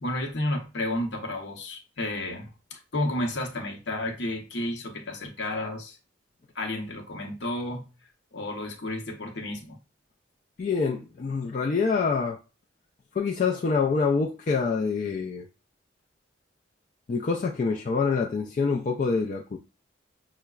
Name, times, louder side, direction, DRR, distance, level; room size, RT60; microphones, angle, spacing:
voice 1, 0.0-6.0 6.5-7.9 8.3-9.8, left 1 dB, 65° left, 0.8 m, -32 dB
voice 2, 10.6-12.4 13.1-15.5 17.1-19.6, left 4 dB, 40° left, 0.3 m, -26 dB
5.5 x 2.0 x 2.3 m
head